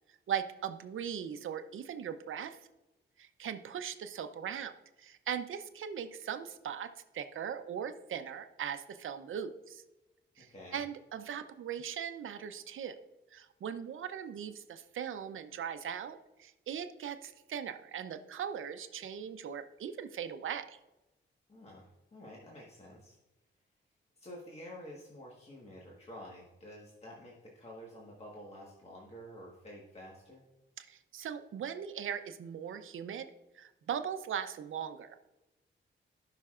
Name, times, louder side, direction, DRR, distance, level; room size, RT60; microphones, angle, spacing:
voice 1, 0.3-2.6 3.2-9.8 10.4-13.0 13.3-20.8 30.8-33.3 33.5-35.3, right 8 dB, 80° right, 9 dB, 0.7 m, -39 dB
voice 2, 10.4-10.8 21.5-23.2 24.2-30.4, equal, 30° left, -3 dB, 1.4 m, -50 dB
17.0 x 5.8 x 2.5 m, 1.0 s
wide cardioid pair, 150°, 20 cm